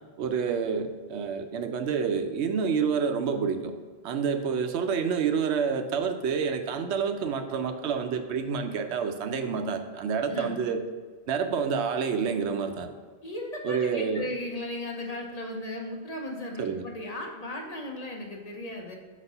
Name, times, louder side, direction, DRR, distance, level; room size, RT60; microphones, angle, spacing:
voice 1, 0.2-3.7 4.0-10.8 11.3-12.9 13.6-14.3 16.6-16.8, right 6 dB, 85° right, 7 dB, 0.9 m, -28 dB
voice 2, 13.2-19.0, left 1 dB, 40° left, 1 dB, 0.7 m, -36 dB
5.0 x 4.1 x 5.4 m, 1.5 s
omnidirectional pair, 1.1 m